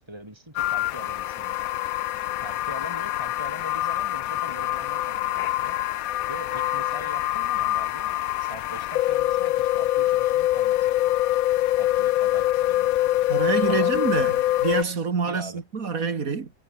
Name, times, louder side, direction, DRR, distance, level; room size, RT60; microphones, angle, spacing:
voice 1, 0.0-1.6 2.4-5.8 6.3-8.1 8.4-10.9 11.8-13.1 13.6-14.0 15.3-15.6, right 1 dB, 20° right, 6.6 m, -42 dB
sound 1, 0.6-14.8, left 14 dB, 85° left, 1.0 m, -24 dB
voice 2, 13.3-16.5, right 5 dB, 85° right, 2.6 m, -26 dB
omnidirectional pair, 1.4 m